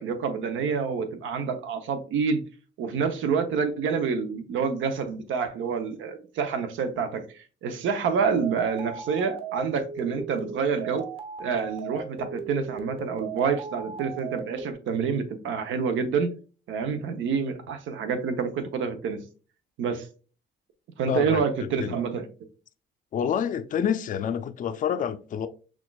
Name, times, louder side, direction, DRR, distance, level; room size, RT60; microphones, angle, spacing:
voice 1, 0.0-2.4 2.8-11.1 11.4-16.3 16.7-19.2 19.8-20.1 21.0-22.3, right 6 dB, 75° right, 0.7 m, -27 dB
sound 1, 8.2-14.7, right 5 dB, 30° right, 0.9 m, -37 dB
voice 2, 21.1-21.4 21.8-21.9 23.1-25.5, left 8 dB, 40° left, 0.4 m, -27 dB
5.9 x 2.4 x 2.3 m
cardioid pair, 90°, 20 cm